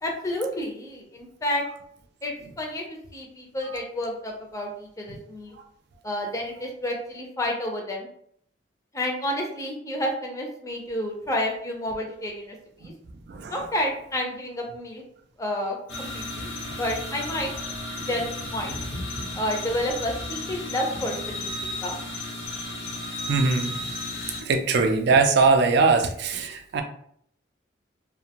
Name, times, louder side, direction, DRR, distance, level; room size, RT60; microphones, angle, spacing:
voice 1, 0.0-1.6 2.2-2.8 3.1-5.5 6.0-8.1 8.9-12.5 12.8-12.9 13.5-15.0 15.4-16.5 16.8-17.5 18.1-18.7 19.3-21.5 21.8-22.0, left 1 dB, 20° left, 0 dB, 0.5 m, -30 dB
sound 1, 15.9-24.4, left 1 dB, 80° left, 0.9 m, -33 dB
voice 2, 23.3-23.8 24.4-26.8, right 4 dB, 65° right, 6 dB, 0.4 m, -21 dB
2.5 x 2.1 x 2.8 m, 0.67 s
head